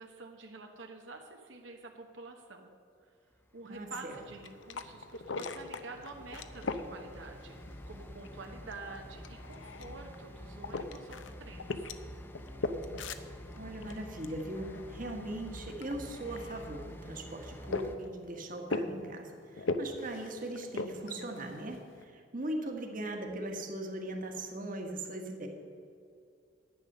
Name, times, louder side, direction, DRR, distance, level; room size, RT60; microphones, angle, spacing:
voice 1, 0.0-2.7 3.0-3.1 3.5-11.9, right 3 dB, 80° right, 3 dB, 1.0 m, -48 dB
sound 1, 3.7-18.0, equal, 10° left, 0.7 m, -49 dB
voice 2, 3.7-4.2 13.6-25.5, right 1 dB, 45° right, 3 dB, 1.4 m, -40 dB
sound 2, 4.2-22.0, left 3 dB, 80° left, 0.7 m, -41 dB
10.5 x 9.1 x 6.7 m, 2.4 s
head